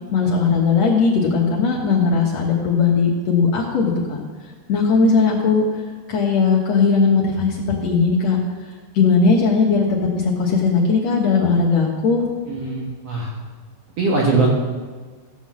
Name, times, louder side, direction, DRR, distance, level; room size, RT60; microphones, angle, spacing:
voice 1, 0.1-4.2 4.7-5.8 6.1-8.4 8.9-9.9 10.1-12.2, left 4 dB, 75° left, -2 dB, 1.5 m, -18 dB
voice 2, 12.5-13.3 14.0-14.5, right 3 dB, 80° right, -3 dB, 1.4 m, -20 dB
15.5 x 5.8 x 7.4 m, 1.4 s
omnidirectional pair, 5.1 m